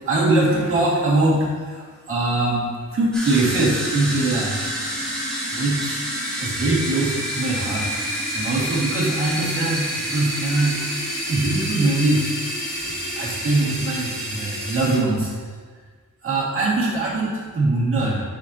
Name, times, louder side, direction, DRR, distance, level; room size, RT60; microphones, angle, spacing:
voice 1, 0.1-2.7 2.9-4.6 5.5-6.0 6.4-7.8 8.3-10.8 11.3-12.3 13.2-15.3 16.2-18.2, right 2 dB, 45° right, -5 dB, 1.9 m, -22 dB
sound 1, 3.1-15.0, equal, 5° left, 2.0 m, -28 dB
8.4 x 7.2 x 2.8 m, 1.5 s
wide cardioid pair, 165°, 30 cm